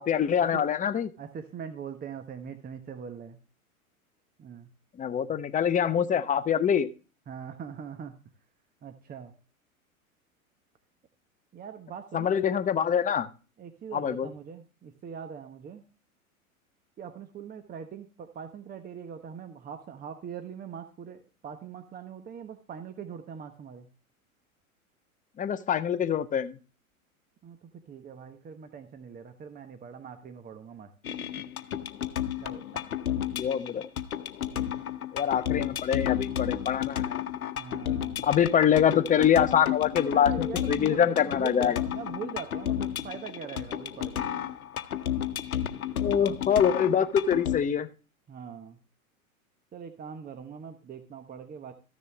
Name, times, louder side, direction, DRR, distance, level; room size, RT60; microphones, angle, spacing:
voice 1, 0.0-1.1 5.0-6.9 12.1-13.3 13.9-14.3 25.4-26.6 33.3-33.9 35.1-37.2 38.2-41.8 46.0-47.9, left 8 dB, 20° left, 10 dB, 0.8 m, -25 dB
voice 2, 1.2-3.4 4.4-4.7 7.3-8.1 8.8-9.3 11.5-12.5 13.6-15.8 17.0-23.9 27.4-31.5 32.4-32.8 34.5-34.8 37.5-38.3 40.1-44.3 48.3-48.8 49.7-51.7, right 7 dB, 20° right, 8 dB, 1.1 m, -42 dB
sound 1, 31.0-47.6, left 10 dB, 75° left, 0.9 m, -32 dB
14.0 x 6.8 x 3.3 m, 0.34 s
hypercardioid pair, 95°, 43 cm